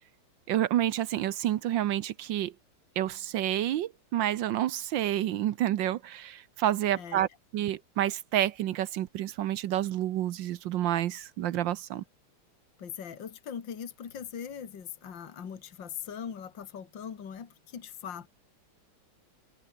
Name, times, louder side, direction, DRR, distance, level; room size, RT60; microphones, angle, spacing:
voice 1, 0.5-2.5 3.0-12.0, right 12 dB, 70° right, 1.4 m, -29 dB
voice 2, 7.0-7.3 12.8-18.3, left 8 dB, 60° left, 2.7 m, -40 dB
omnidirectional pair, 2.3 m